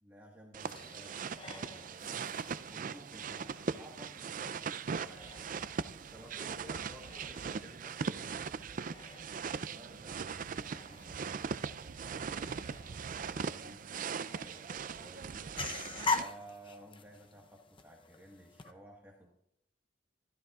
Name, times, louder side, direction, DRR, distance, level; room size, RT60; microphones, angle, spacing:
voice 1, 0.0-2.2 2.6-5.4 5.9-6.9 9.6-13.9 14.3-15.5 16.1-19.3, right 1 dB, 10° right, -3 dB, 1.5 m, -55 dB
sound 1, 0.5-16.2, right 6 dB, 45° right, 0.4 m, -40 dB
sound 2, 0.6-18.7, left 4 dB, 30° left, 0.7 m, -45 dB
voice 2, 6.1-8.4, equal, 5° left, -1 dB, 3.7 m, -53 dB
27.0 x 13.0 x 2.4 m, 0.78 s
head